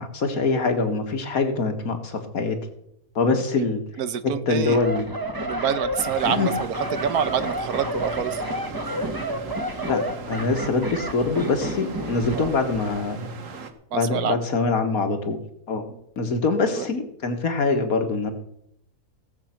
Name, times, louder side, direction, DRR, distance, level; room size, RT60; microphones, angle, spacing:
voice 1, 0.0-2.6 3.2-3.8 4.2-5.1 6.3-6.5 9.9-13.3 13.9-15.4 15.7-15.9 16.2-18.3, left 3 dB, 70° left, 6 dB, 2.1 m, -24 dB
voice 2, 4.0-4.8 5.4-8.4 12.3-12.5 13.9-14.4 15.9-16.0 16.8-16.9, right 8 dB, 90° right, 13 dB, 1.5 m, -27 dB
sound 1, 4.6-12.5 12.7-13.0, right 1 dB, 15° right, 1.2 m, -30 dB
sound 2, 6.0-13.7, right 4 dB, 60° right, 1.6 m, -38 dB
17.5 x 7.6 x 5.9 m, 0.75 s
omnidirectional pair, 1.6 m